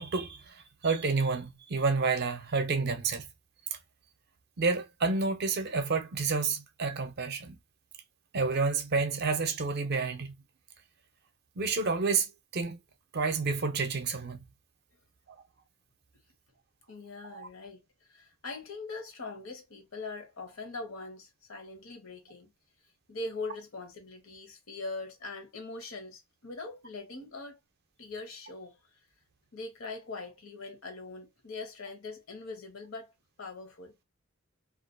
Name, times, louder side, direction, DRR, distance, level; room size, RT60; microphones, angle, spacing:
voice 1, 0.0-3.3 3.7-3.8 4.6-7.6 8.3-10.3 11.6-12.8 13.1-14.5 15.3-15.4 17.3-17.5, right 4 dB, 50° right, 0.5 m, -29 dB
voice 2, 16.9-22.5 23.1-27.6 28.0-29.0 29.5-33.9, left 3 dB, 75° left, 0.9 m, -42 dB
2.4 x 2.2 x 2.4 m
head